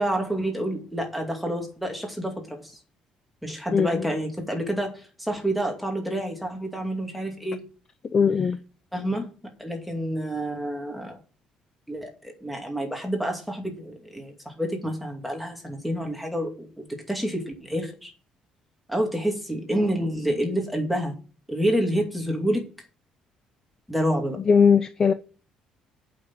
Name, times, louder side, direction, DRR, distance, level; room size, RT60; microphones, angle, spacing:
voice 1, 0.0-2.8 3.4-7.7 8.9-9.3 9.6-11.2 11.9-18.1 18.9-21.1 21.5-22.7 23.9-24.4, right 1 dB, ahead, 2.4 m, -28 dB
voice 2, 8.1-8.6 24.5-25.1, left 6 dB, 25° left, 0.5 m, -19 dB
8.4 x 6.0 x 7.5 m
cardioid pair, 160°, 2 cm